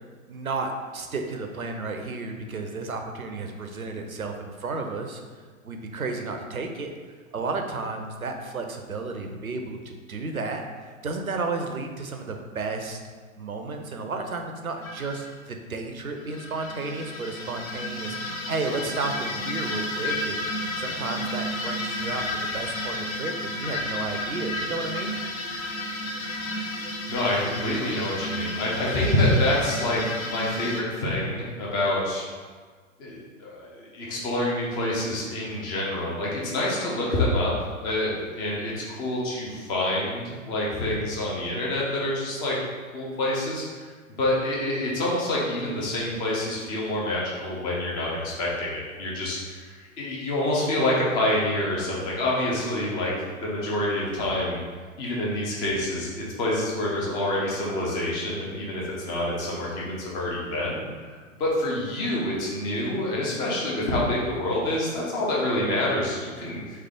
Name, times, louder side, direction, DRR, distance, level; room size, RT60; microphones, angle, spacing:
voice 1, 0.3-5.2 5.6-6.9 7.3-13.0 13.4-25.1, right 3 dB, 85° right, 4 dB, 0.6 m, -32 dB
sound 1, 14.8-15.3 16.2-30.8, left 1 dB, 75° left, 0.7 m, -32 dB
voice 2, 27.1-32.2 33.0-37.5 37.8-42.5 42.9-43.6 44.2-53.1 53.4-54.6 55.0-60.9 61.4-66.6, left 1 dB, 10° left, -5 dB, 0.4 m, -27 dB
3.3 x 3.2 x 3.6 m, 1.5 s
figure-of-eight pair, 100°, 41 cm